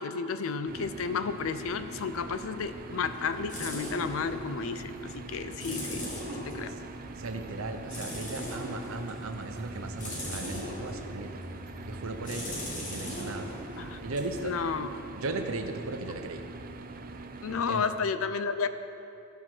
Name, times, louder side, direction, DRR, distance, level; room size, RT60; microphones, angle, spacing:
voice 1, 0.0-6.7 13.8-14.0 14.4-14.9 17.4-18.7, left 5 dB, 75° left, 11 dB, 0.5 m, -32 dB
sound 1, 0.7-17.6, right 3 dB, 45° right, 0.5 m, -44 dB
sound 2, 2.5-15.2, left 1 dB, 40° left, 1.9 m, -40 dB
voice 2, 7.2-11.4 11.9-12.6 12.9-13.5 14.0-14.6 15.1-16.4 17.7-17.9, right 2 dB, 80° right, 6 dB, 0.8 m, -36 dB
14.0 x 4.6 x 6.0 m, 2.7 s
head